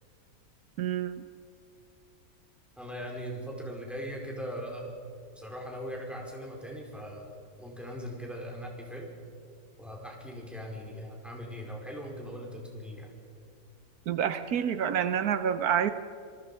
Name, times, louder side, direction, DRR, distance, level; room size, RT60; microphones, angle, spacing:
voice 1, 0.8-1.2 14.1-15.9, right 8 dB, 80° right, 11 dB, 1.3 m, -28 dB
voice 2, 2.8-5.0 5.3-7.3 7.6-9.1 9.8-13.1, equal, ahead, -1 dB, 4.8 m, -40 dB
26.0 x 23.5 x 5.6 m, 2.4 s
omnidirectional pair, 1.6 m